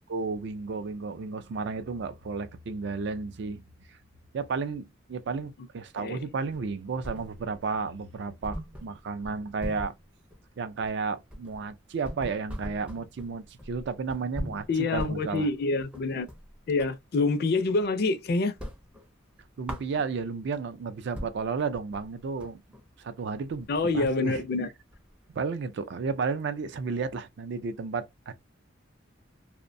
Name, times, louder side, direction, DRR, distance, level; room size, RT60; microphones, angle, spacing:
voice 1, 0.1-3.7 4.3-9.9 10.6-15.5 19.6-22.6 23.0-23.7 23.9-24.4 25.3-28.4, right 4 dB, 65° right, 0.4 m, -32 dB
sound 1, 6.5-7.7 8.0-8.1 8.4-17.0 17.4-18.2 18.4-20.4 20.9-21.0 21.1-25.3, equal, 5° right, 0.4 m, -41 dB
voice 2, 14.7-16.3 16.7-18.5 23.7-24.7, left 3 dB, 55° left, 0.4 m, -26 dB
2.5 x 2.1 x 2.5 m
head